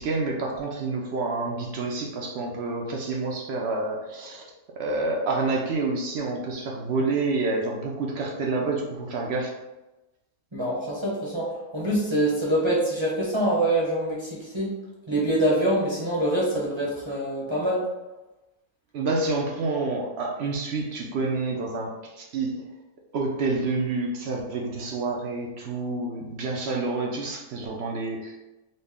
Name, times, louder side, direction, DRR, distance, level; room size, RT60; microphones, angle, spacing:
voice 1, 0.0-4.4 4.8-9.5 18.9-22.6 23.1-28.4, right 3 dB, 70° right, 0 dB, 0.6 m, -28 dB
voice 2, 10.5-14.7 15.1-17.8, right 1 dB, 30° right, -6 dB, 0.6 m, -25 dB
4.0 x 2.0 x 3.5 m, 1.0 s
omnidirectional pair, 1.6 m